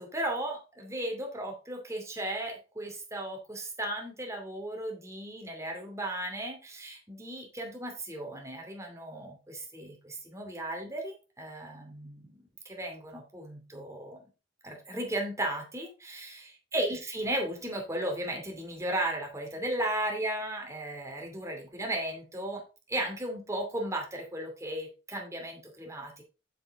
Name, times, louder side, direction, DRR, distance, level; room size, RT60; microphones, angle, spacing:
voice 1, 0.0-14.3 14.6-22.6 22.9-26.2, right 1 dB, 15° right, 1 dB, 2.5 m, -35 dB
7.7 x 7.2 x 3.7 m, 0.31 s
head